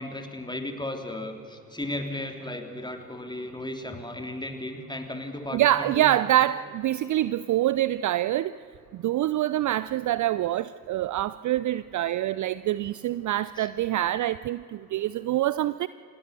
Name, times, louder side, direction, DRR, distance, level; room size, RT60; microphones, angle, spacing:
voice 1, 0.0-6.2 13.6-13.7, left 1 dB, 10° left, 5 dB, 3.3 m, -35 dB
voice 2, 5.5-8.5 9.0-15.9, right 13 dB, 40° right, 17 dB, 0.6 m, -25 dB
28.0 x 18.5 x 6.9 m, 2.4 s
figure-of-eight pair, 45°, 47 cm